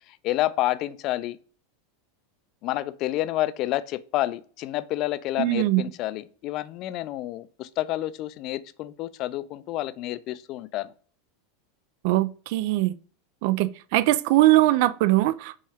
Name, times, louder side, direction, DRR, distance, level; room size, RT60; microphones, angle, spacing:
voice 1, 0.2-1.4 2.6-10.9, left 15 dB, 50° left, 0.3 m, -29 dB
voice 2, 5.4-5.8 12.0-12.9 13.4-15.6, right 17 dB, 60° right, 0.3 m, -21 dB
5.4 x 2.3 x 3.3 m
hypercardioid pair, 95°, 0 cm